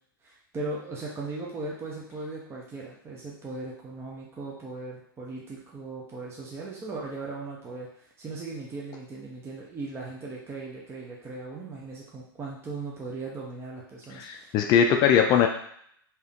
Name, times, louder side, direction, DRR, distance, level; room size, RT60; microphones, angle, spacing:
voice 1, 0.2-14.6, right 3 dB, 20° right, -3 dB, 0.7 m, -38 dB
voice 2, 14.2-15.5, left 8 dB, 35° left, 4 dB, 0.4 m, -20 dB
3.5 x 2.9 x 3.5 m, 0.68 s
hypercardioid pair, 115°, 12 cm